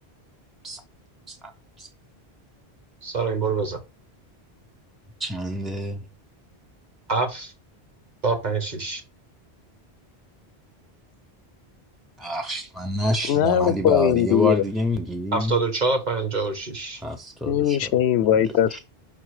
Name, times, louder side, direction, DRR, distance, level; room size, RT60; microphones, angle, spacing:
voice 1, 3.0-3.8 7.1-7.5 8.2-9.0 15.3-17.0, right 4 dB, 45° right, 1.4 m, -25 dB
voice 2, 5.2-6.0 12.2-15.5 17.0-17.9 18.7-18.8, left 1 dB, ahead, 0.4 m, -27 dB
voice 3, 13.3-14.6 17.5-18.8, left 10 dB, 80° left, 0.8 m, -20 dB
5.8 x 4.2 x 4.7 m
omnidirectional pair, 1.1 m